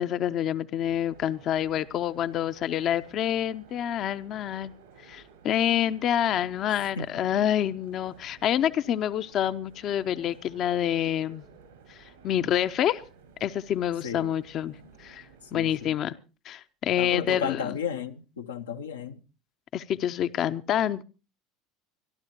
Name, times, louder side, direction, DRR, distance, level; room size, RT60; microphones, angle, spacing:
voice 1, 0.0-4.7 5.0-11.4 11.9-13.0 13.4-15.3 15.5-16.1 16.4-17.6 19.7-21.0, left 10 dB, 50° left, 0.6 m, -27 dB
sound 1, 0.8-15.9, right 5 dB, 85° right, 5.0 m, -54 dB
voice 2, 15.5-16.0 17.0-19.2, left 6 dB, 85° left, 0.8 m, -34 dB
26.0 x 12.0 x 2.9 m
hypercardioid pair, 75°, 0 cm